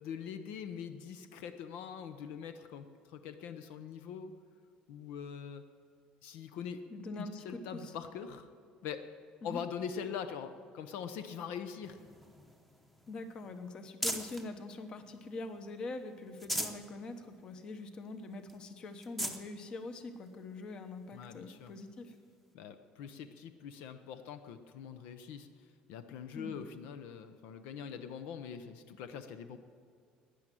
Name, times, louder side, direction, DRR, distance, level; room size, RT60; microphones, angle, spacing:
voice 1, 0.0-4.3 4.9-5.6 6.2-6.8 7.2-8.5 8.8-9.1 9.4-12.0 21.1-21.7 22.5-29.6, left 7 dB, 75° left, 9 dB, 0.8 m, -43 dB
voice 2, 6.9-7.9 9.4-9.6 13.1-22.1 26.3-26.6, left 2 dB, 30° left, 9 dB, 1.0 m, -44 dB
sound 1, 11.8-14.5 15.0-15.8 16.2-16.9 17.3-17.4 17.8-17.9 18.5-18.6 19.0-19.4 20.3-20.4 22.1-22.2, equal, 5° left, 0.9 m, -40 dB
12.5 x 10.0 x 9.1 m, 2.2 s
cardioid pair, 165°, 3 cm